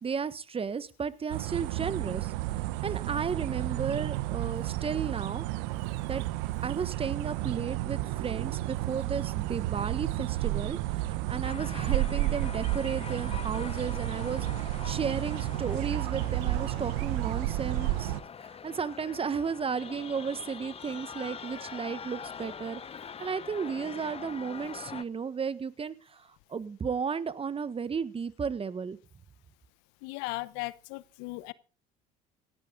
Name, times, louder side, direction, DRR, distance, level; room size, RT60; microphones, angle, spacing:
voice 1, 0.0-2.3 2.8-5.5 6.1-6.2 6.6-18.1 18.6-22.8 23.2-29.0, right 6 dB, 30° right, 1.4 m, -34 dB
sound 1, 1.3-18.2, right 16 dB, 80° right, 0.9 m, -32 dB
sound 2, 11.4-25.0, left 7 dB, 35° left, 1.0 m, -44 dB
voice 2, 30.0-31.5, left 22 dB, 75° left, 0.8 m, -37 dB
17.0 x 12.0 x 3.9 m
hypercardioid pair, 75°, 19 cm